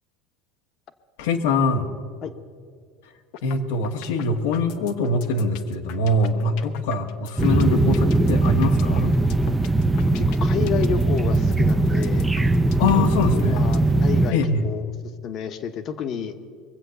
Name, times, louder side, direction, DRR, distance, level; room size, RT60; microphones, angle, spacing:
voice 1, 1.2-1.9 3.4-9.1 12.8-13.7 14.3-14.7, left 2 dB, 85° left, 5 dB, 1.4 m, -23 dB
sound 1, 3.3-3.6 3.8-13.9, left 10 dB, 65° left, 0.9 m, -41 dB
sound 2, 7.4-14.3, right 2 dB, 10° right, 0.6 m, -20 dB
voice 2, 10.1-12.3 12.9-14.9 15.2-16.3, left 7 dB, 45° left, 9 dB, 1.1 m, -30 dB
22.5 x 7.8 x 6.9 m, 2.1 s
supercardioid pair, 130°, 0 cm